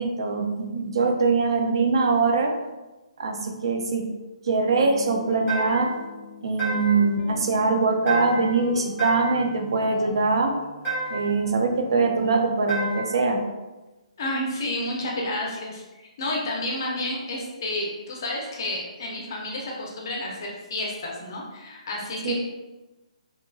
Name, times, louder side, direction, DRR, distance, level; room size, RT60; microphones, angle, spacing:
voice 1, 0.0-2.5 3.2-4.1 4.4-5.9 6.4-10.5 11.1-13.4 22.2-22.3, right 3 dB, 45° right, 3 dB, 0.3 m, -23 dB
Guitar, 4.7-12.9, left 2 dB, 75° left, 0.6 m, -42 dB
sound 1, 5.5-6.0 6.6-7.1 8.1-8.6 9.0-9.5 10.8-11.4 12.7-13.2, right 2 dB, 15° right, 1.0 m, -30 dB
voice 2, 14.2-20.4 20.7-22.3, left 1 dB, 30° left, -2 dB, 0.5 m, -30 dB
2.7 x 2.5 x 2.3 m, 1.1 s
hypercardioid pair, 180°, 4 cm